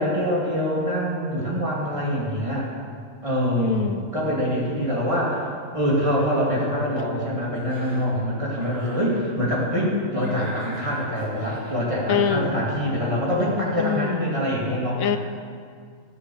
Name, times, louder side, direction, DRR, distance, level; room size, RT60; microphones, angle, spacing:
voice 1, 0.0-2.7 3.2-5.5 5.7-15.1, equal, 20° right, -5 dB, 2.5 m, -24 dB
voice 2, 3.6-4.1 12.1-12.5 13.8-14.2 15.0-15.2, left 7 dB, 70° left, 8 dB, 1.1 m, -24 dB
Cough, 7.5-8.1 8.5-9.1 10.2-11.8, right 1 dB, 45° right, 2.5 m, -39 dB
14.5 x 6.5 x 6.4 m, 2.1 s
omnidirectional pair, 1.5 m